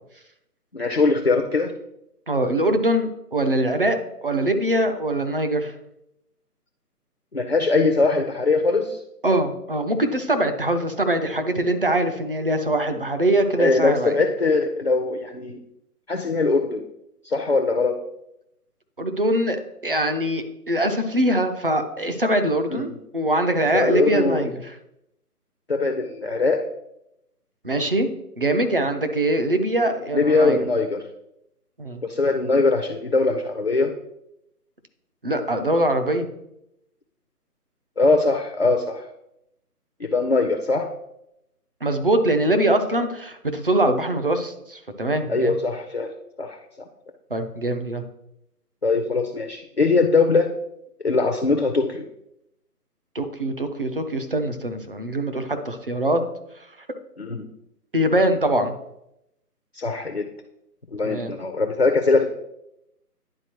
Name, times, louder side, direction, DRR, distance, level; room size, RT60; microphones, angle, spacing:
voice 1, 0.7-1.7 7.3-9.0 13.6-15.6 16.1-16.8 17.2-18.0 22.7-23.0 23.7-24.5 25.7-26.6 30.1-31.0 32.0-33.9 38.0-39.0 40.0-40.9 45.3-46.1 46.4-46.6 48.8-50.5 51.0-52.1 57.2-57.5 59.7-60.2 60.9-62.3, left 3 dB, 45° left, 5 dB, 0.4 m, -21 dB
voice 2, 2.3-5.7 9.2-14.1 19.0-24.7 27.6-28.1 28.4-30.6 31.8-32.0 35.2-36.3 41.8-45.6 47.3-48.0 53.1-56.2 57.9-58.7 61.0-61.3, right 1 dB, 35° right, 7 dB, 0.6 m, -23 dB
10.5 x 4.0 x 2.9 m, 0.82 s
figure-of-eight pair, 155°, 48 cm